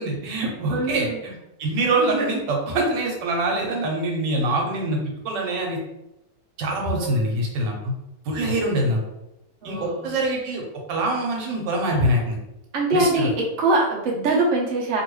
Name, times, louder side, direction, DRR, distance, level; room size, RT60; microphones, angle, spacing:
voice 1, 0.0-1.3 1.6-5.0 5.2-5.8 6.6-7.9 8.3-9.0 9.6-10.6 10.9-12.4 12.9-13.3, right 1 dB, 85° right, 0 dB, 1.4 m, -24 dB
voice 2, 0.7-1.2 7.0-7.4 9.6-10.1 12.7-15.0, right 2 dB, 55° right, -3 dB, 0.9 m, -23 dB
3.0 x 2.6 x 3.0 m, 0.90 s
omnidirectional pair, 1.9 m